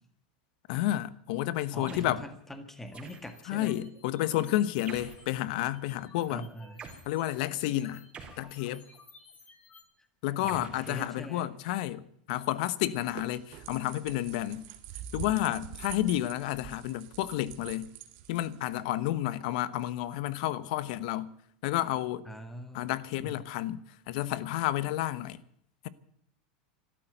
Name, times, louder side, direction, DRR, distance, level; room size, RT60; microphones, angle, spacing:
voice 1, 0.7-2.2 3.5-6.5 7.1-8.0 8.4-8.8 10.2-14.6 15.1-17.9 18.3-21.3 21.6-22.3 22.7-23.8 24.1-25.4, left 14 dB, 65° left, 1.1 m, -31 dB
voice 2, 1.7-3.8 6.3-6.8 10.4-11.5 22.3-23.4, equal, 5° left, 1.8 m, -43 dB
sound 1, 1.9-2.3 2.9-3.6 4.9-5.3 6.8-7.1 8.1-9.0 10.5-11.5, right 5 dB, 25° right, 3.8 m, -48 dB
sound 2, 2.9-5.4 5.7-9.8, left 4 dB, 30° left, 3.9 m, -56 dB
sound 3, 12.8-18.8, right 10 dB, 60° right, 2.0 m, -45 dB
12.5 x 12.5 x 9.2 m
supercardioid pair, 120°, 5 cm